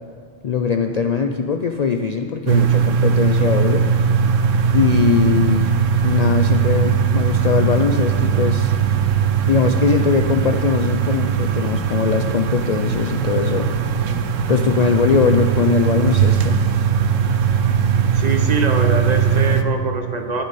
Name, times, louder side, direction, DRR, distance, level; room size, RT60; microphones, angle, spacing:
voice 1, 0.4-3.8 4.7-5.7 6.0-8.7 9.5-13.7 14.5-16.6, left 6 dB, 90° left, 6 dB, 0.3 m, -20 dB
sound 1, 2.5-19.6, right 7 dB, 80° right, 1.0 m, -19 dB
voice 2, 18.1-20.4, right 4 dB, 40° right, 5 dB, 0.8 m, -23 dB
19.0 x 6.3 x 4.1 m, 2.1 s
omnidirectional pair, 1.3 m